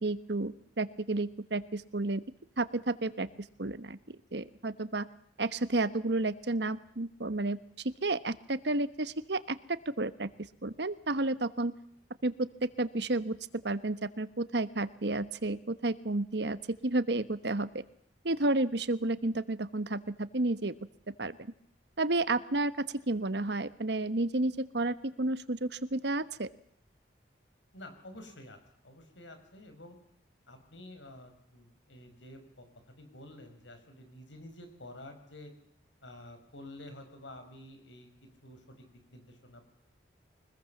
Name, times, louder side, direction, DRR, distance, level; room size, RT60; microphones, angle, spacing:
voice 1, 0.0-2.2 2.6-3.3 3.6-5.1 5.4-7.6 8.0-10.3 10.6-11.7 12.2-13.4 13.6-17.8 18.2-20.7 21.2-21.4 22.0-26.5, right 2 dB, 65° right, 14 dB, 1.2 m, -31 dB
voice 2, 27.7-28.6 28.8-30.0 30.5-35.5 36.0-38.1 38.4-39.6, left 1 dB, 85° left, 7 dB, 6.0 m, -50 dB
24.5 x 20.5 x 7.2 m, 0.71 s
head